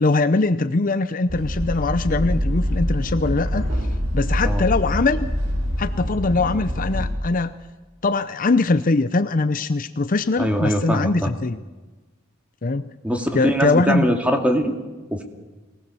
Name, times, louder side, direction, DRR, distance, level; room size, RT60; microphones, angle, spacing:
voice 1, 0.0-3.9 4.1-5.3 5.8-7.5 8.0-11.6 12.6-12.9 13.3-14.1, left 3 dB, 45° left, 12 dB, 0.7 m, -21 dB
sound 1, 1.3-7.1, equal, 90° right, 6.5 m, -24 dB
voice 2, 10.4-11.3 13.0-14.7 15.1-15.2, equal, 5° right, 4 dB, 2.3 m, -22 dB
23.5 x 18.5 x 7.0 m, 1.2 s
head